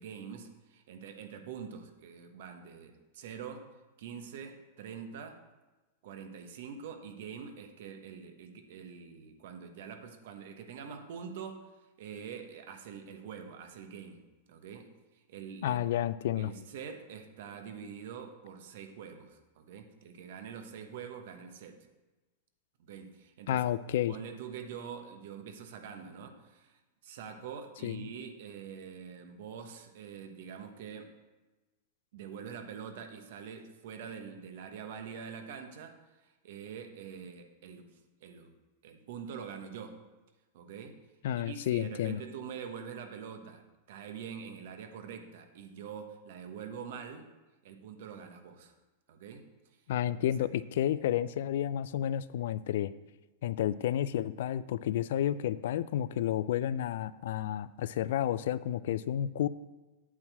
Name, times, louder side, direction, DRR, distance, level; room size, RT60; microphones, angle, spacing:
voice 1, 0.0-3.7 4.0-5.4 6.0-11.7 12.0-15.9 16.4-21.8 22.8-23.6 24.1-31.1 32.1-38.5 38.8-40.0 40.5-41.0 41.4-47.3 47.6-48.7 49.1-49.4, right 7 dB, 65° right, 6 dB, 1.2 m, -45 dB
voice 2, 15.6-16.5 23.5-24.2 27.8-28.0 41.2-42.2 49.9-52.9 53.4-59.5, left 11 dB, 65° left, 17 dB, 0.4 m, -31 dB
8.6 x 4.5 x 7.4 m, 1.1 s
hypercardioid pair, 115°, 0 cm